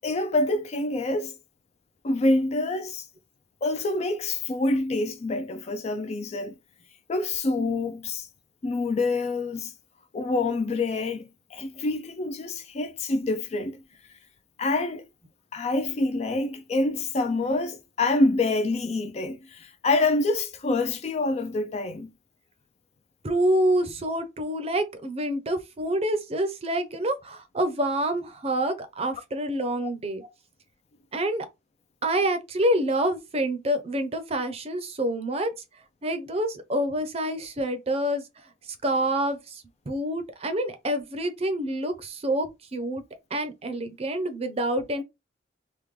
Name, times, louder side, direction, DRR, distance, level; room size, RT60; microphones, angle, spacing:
voice 1, 0.0-1.4 2.0-3.1 3.6-6.5 7.1-8.3 8.6-9.7 10.1-13.8 14.6-15.0 15.5-22.1 29.8-29.9, left 2 dB, 35° left, 0.4 m, -26 dB
voice 2, 23.2-30.3 31.1-31.5 32.0-35.5 36.0-38.2 38.8-43.0 43.3-45.0, right 1 dB, 35° right, 0.6 m, -27 dB
3.5 x 2.2 x 3.1 m
head